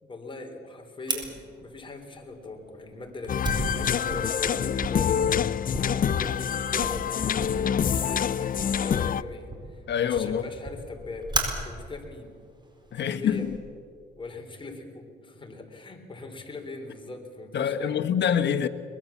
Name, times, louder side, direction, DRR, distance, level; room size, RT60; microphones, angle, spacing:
voice 1, 0.0-5.5 5.9-12.3 12.9-13.5 14.2-18.0, left 3 dB, 25° left, 3.9 m, -40 dB
Fire, 1.1-13.6, right 2 dB, 20° right, 4.5 m, -37 dB
sound 1, 3.3-9.2, left 8 dB, 45° left, 0.6 m, -26 dB
voice 2, 9.9-10.4 12.9-13.6 17.5-18.7, left 8 dB, 60° left, 1.3 m, -25 dB
23.0 x 20.5 x 7.3 m
cardioid pair, 90°, 20 cm